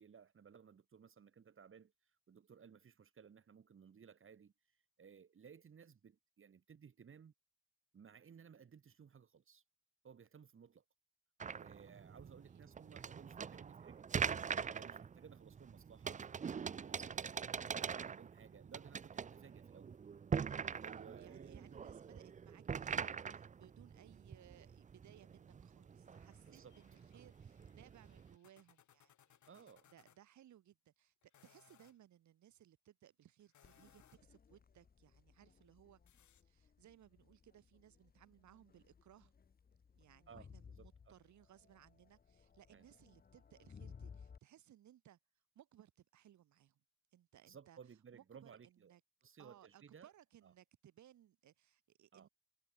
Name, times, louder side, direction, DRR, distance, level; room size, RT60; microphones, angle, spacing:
voice 1, 0.0-1.9 2.3-4.5 5.0-7.3 7.9-9.6 10.0-10.8 11.5-14.0 14.7-17.4 17.7-19.9 20.6-21.9 26.5-26.8 29.5-29.9 40.3-41.2 42.7-42.8 47.4-48.9 49.2-50.1 50.4-50.5 52.1-52.3, right 7 dB, 45° right, 2.6 m, -59 dB
sound 1, 11.4-28.4, right 6 dB, 25° right, 0.5 m, -44 dB
voice 2, 12.2-12.6 20.9-31.1 31.4-36.0 36.4-39.3 40.0-45.2 45.6-46.8 47.1-47.8 48.1-49.0 49.4-52.3, right 11 dB, 70° right, 2.0 m, -64 dB
sound 2, 26.1-30.2 31.2-32.0 33.4-34.4 36.1-36.4, left 11 dB, 70° left, 5.8 m, -70 dB
Crowd, 33.6-44.4, left 6 dB, 30° left, 1.0 m, -60 dB
cardioid pair, 100°, 30 cm